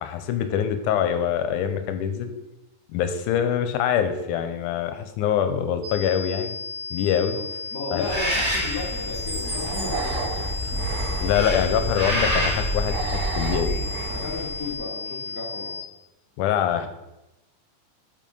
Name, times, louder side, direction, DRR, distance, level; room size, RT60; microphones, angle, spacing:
voice 1, 0.0-2.3 2.9-6.6 6.9-7.5 7.9-8.1 11.2-13.8 16.4-16.9, left 9 dB, 85° left, 9 dB, 2.1 m, -24 dB
sound 1, 5.8-15.8, left 4 dB, 55° right, 2.9 m, -34 dB
voice 2, 7.7-10.8 14.1-15.8, left 3 dB, 55° left, -3 dB, 0.9 m, -34 dB
Bird, 8.0-14.4, equal, 15° right, 1.8 m, -28 dB
sound 2, 8.1-14.8, right 6 dB, 80° right, 2.0 m, -35 dB
7.7 x 5.0 x 5.4 m, 0.95 s
omnidirectional pair, 3.7 m